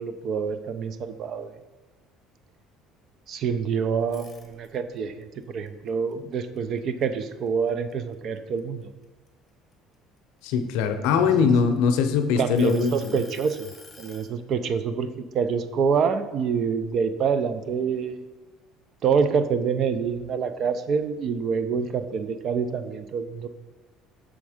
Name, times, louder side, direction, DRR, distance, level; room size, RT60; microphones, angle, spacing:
voice 1, 0.0-1.5 3.3-8.9 11.4-11.5 12.4-13.7 14.0-18.2 19.0-23.5, right 6 dB, 45° right, 11 dB, 0.4 m, -26 dB
sound 1, 4.0-5.0 5.4-7.2 7.7-7.9 8.4-10.2 10.9-12.0 12.6-14.3, left 3 dB, 25° left, 0.8 m, -49 dB
voice 2, 10.4-13.2, left 6 dB, 85° left, 8 dB, 0.6 m, -22 dB
6.3 x 3.5 x 4.9 m, 1.2 s
cardioid pair, 145°, 0 cm